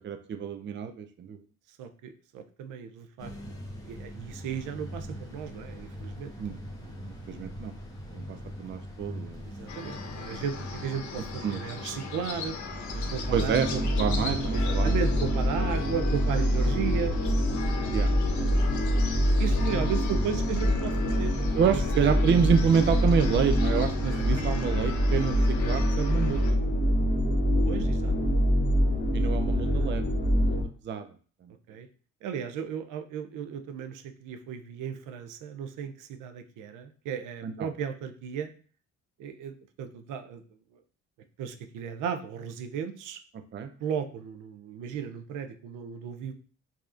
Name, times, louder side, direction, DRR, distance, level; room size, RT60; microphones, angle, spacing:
voice 1, 0.0-1.4 6.4-7.7 8.1-9.5 11.4-11.6 13.3-13.7 14.0-14.9 17.9-18.1 21.6-26.7 29.1-30.6 30.8-31.1 31.4-31.5 37.4-37.7 43.5-43.7, right 7 dB, 40° right, 8 dB, 0.4 m, -28 dB
voice 2, 1.7-3.3 3.8-6.3 8.1-8.2 9.4-12.6 12.9-13.8 14.5-17.2 18.4-18.6 19.4-21.8 24.1-24.4 27.6-28.1 29.5-29.9 31.7-31.9 32.2-38.5 39.2-40.6 41.4-43.2 43.8-46.3, right 7 dB, 90° right, 8 dB, 0.6 m, -35 dB
sound 1, 3.2-15.2, equal, 10° left, 1.0 m, -42 dB
sound 2, 9.7-26.5, left 5 dB, 75° left, 0.8 m, -39 dB
sound 3, 12.6-30.6, equal, 40° left, 1.2 m, -25 dB
4.8 x 2.8 x 2.4 m, 0.41 s
cardioid pair, 90°, 30 cm